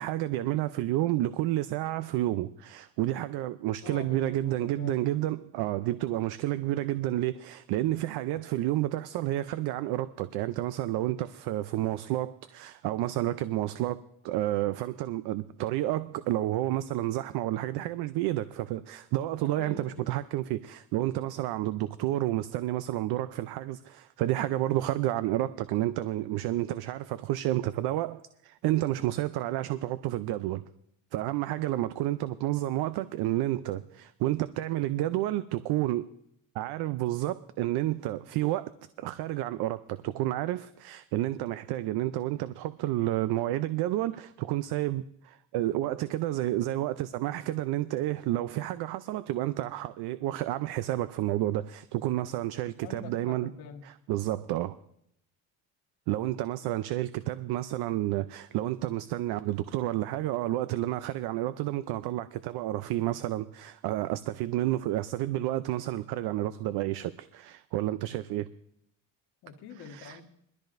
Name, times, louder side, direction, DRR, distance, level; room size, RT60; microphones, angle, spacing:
voice 1, 0.0-30.6 31.1-36.1 36.5-38.7 39.0-53.5 54.1-54.8 56.1-68.5 69.9-70.2, right 15 dB, 75° right, 0.6 m, -30 dB
voice 2, 3.8-5.1 19.4-20.1 52.8-53.8 69.4-70.2, left 6 dB, 70° left, 1.7 m, -45 dB
21.5 x 13.5 x 2.6 m
cardioid pair, 100°, 39 cm